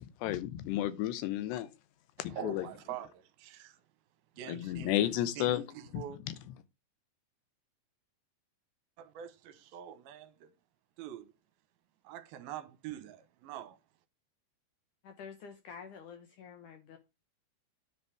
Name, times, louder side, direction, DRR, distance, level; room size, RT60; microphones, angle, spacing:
voice 1, 0.0-1.7 2.2-2.7 4.5-5.6 5.9-6.4, left 13 dB, 85° left, 3.0 m, -32 dB
voice 2, 2.2-3.8 4.4-4.9 5.4-6.2 9.0-10.5 11.0-11.3 12.0-13.8, right 10 dB, 70° right, 2.6 m, -45 dB
voice 3, 15.0-17.0, left 6 dB, 70° left, 2.0 m, -48 dB
10.0 x 5.5 x 4.7 m
omnidirectional pair, 4.8 m